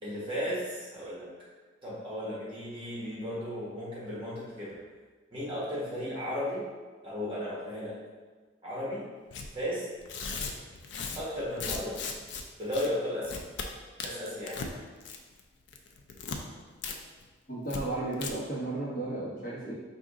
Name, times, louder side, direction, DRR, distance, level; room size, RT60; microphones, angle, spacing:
voice 1, 0.0-1.3 1.8-4.8 5.3-6.7 7.0-8.0 8.6-9.1 9.5-9.9 11.2-12.0 12.6-13.4 14.0-14.6, equal, 25° right, -8 dB, 1.2 m, -35 dB
Tearing, 9.3-9.5 10.0-12.4 12.7-12.9 13.2-13.7 14.0-14.7 15.0-15.4 15.7-16.4 16.8-17.0 17.2-17.3 17.7-17.8 18.1-18.3, left 5 dB, 60° left, 0.4 m, -37 dB
voice 2, 17.5-19.7, right 2 dB, 45° left, -7 dB, 1.3 m, -34 dB
4.8 x 2.7 x 3.6 m, 1.4 s
head